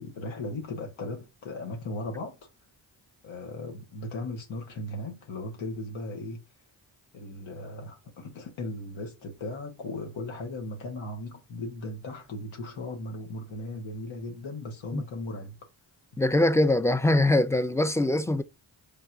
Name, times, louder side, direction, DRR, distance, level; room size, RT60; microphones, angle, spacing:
voice 1, 0.0-2.5 3.2-6.4 7.1-15.6, left 2 dB, 80° left, 1.2 m, -37 dB
voice 2, 16.2-18.4, left 1 dB, 5° left, 0.5 m, -23 dB
4.3 x 3.6 x 2.5 m
supercardioid pair, 45°, 46 cm